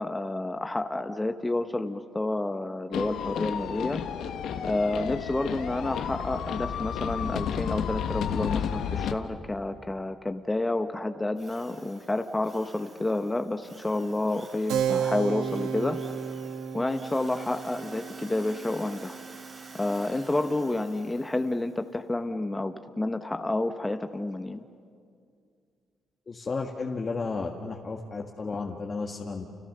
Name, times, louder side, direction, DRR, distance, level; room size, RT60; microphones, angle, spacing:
voice 1, 0.0-4.0 4.6-16.0 16.7-19.2 19.7-24.6, left 2 dB, 15° left, 7 dB, 1.0 m, -30 dB
sound 1, 2.9-9.1, left 8 dB, 75° left, 1.4 m, -31 dB
Drill, 11.4-21.8, right 3 dB, 40° right, 4.9 m, -51 dB
Keyboard (musical), 14.7-20.8, right 8 dB, 90° right, 1.3 m, -33 dB
voice 2, 26.3-29.5, left 4 dB, 35° left, 0 dB, 1.8 m, -33 dB
30.0 x 29.0 x 6.8 m, 2.3 s
cardioid pair, 90°, 0 cm